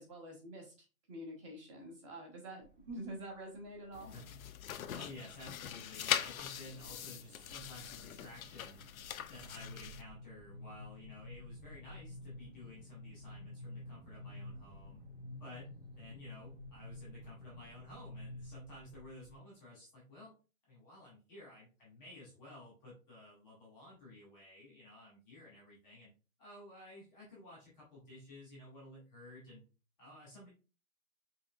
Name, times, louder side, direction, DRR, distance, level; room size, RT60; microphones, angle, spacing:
voice 1, 0.0-4.1, right 1 dB, 20° right, 0 dB, 1.0 m, -47 dB
sound 1, 2.6-3.2 3.6-4.2 4.8-5.7 6.1-6.5 6.8-19.3, left 1 dB, 40° right, 1.7 m, -51 dB
sound 2, 3.9-10.0, left 10 dB, 80° left, 0.6 m, -41 dB
voice 2, 3.9-4.4 4.9-8.9 9.3-15.0 15.4-20.3 20.6-26.1 26.4-29.6 30.0-30.5, left 1 dB, ahead, -25 dB, 0.5 m, -53 dB
5.6 x 3.0 x 2.4 m, 0.33 s
hypercardioid pair, 170°, 42 cm